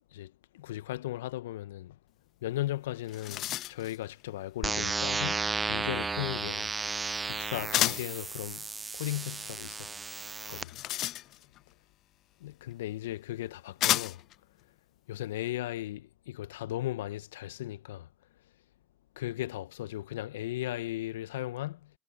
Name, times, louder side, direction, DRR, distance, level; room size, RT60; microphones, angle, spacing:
voice 1, 0.1-2.0 2.4-6.7 7.3-8.7 8.9-9.9 10.5-10.8 12.4-14.2 15.1-18.1 19.2-21.9, left 15 dB, 75° left, 1.2 m, -36 dB
sound 1, 2.6-2.7 3.0-4.0 7.7-8.2 10.4-11.6 12.7-12.8 13.8-14.4, left 14 dB, 50° left, 0.4 m, -31 dB
sound 2, 4.6-10.6, right 4 dB, 20° right, 0.5 m, -34 dB
hypercardioid pair, 75°, 0 cm